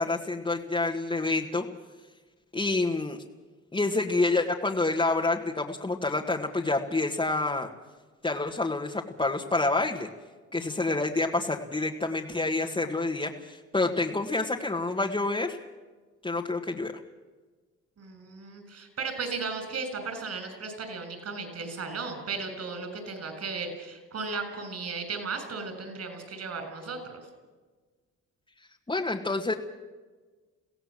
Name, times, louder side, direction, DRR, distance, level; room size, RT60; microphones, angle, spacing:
voice 1, 0.0-1.7 2.5-3.2 3.7-7.7 8.2-10.1 10.5-15.6 16.2-16.9 28.9-29.5, left 2 dB, 15° left, -1 dB, 1.7 m, -28 dB
voice 2, 18.0-27.2, right 4 dB, 55° right, 7 dB, 6.9 m, -35 dB
23.0 x 16.5 x 7.6 m, 1.3 s
cardioid pair, 90°, 30 cm